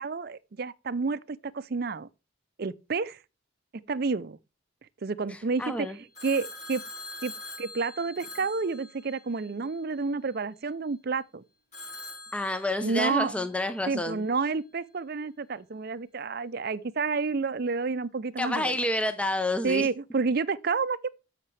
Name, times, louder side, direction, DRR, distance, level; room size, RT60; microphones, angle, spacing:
voice 1, 0.0-2.1 2.6-3.2 3.9-4.4 5.0-6.8 7.2-7.3 7.6-11.4 12.8-13.4 13.9-18.8 19.6-21.1, right 4 dB, 50° right, 0.5 m, -30 dB
voice 2, 5.3-6.0 12.3-14.2 18.4-19.9, left 1 dB, 5° left, 0.6 m, -29 dB
Telephone, 6.1-9.4 11.7-13.2, left 2 dB, 35° left, 6.0 m, -43 dB
13.0 x 5.8 x 3.3 m
head